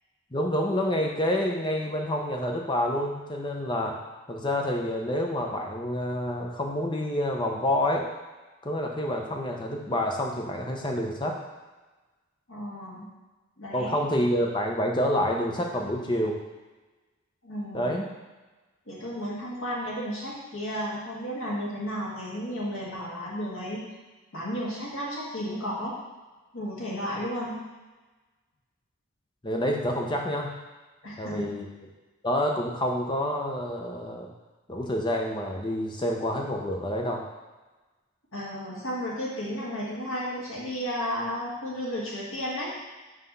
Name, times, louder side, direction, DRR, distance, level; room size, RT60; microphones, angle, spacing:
voice 1, 0.3-4.0 4.3-8.1 8.6-11.4 13.7-16.4 17.7-18.1 29.4-30.5 31.2-31.7 32.2-34.3 34.7-37.2, left 1 dB, 20° left, 0 dB, 0.7 m, -28 dB
voice 2, 12.5-13.1 13.6-14.0 17.4-18.0 18.9-23.8 24.3-26.0 26.5-27.6 31.0-31.5 38.3-42.7, equal, 70° left, -6 dB, 1.9 m, -33 dB
5.7 x 3.5 x 5.4 m, 1.2 s
head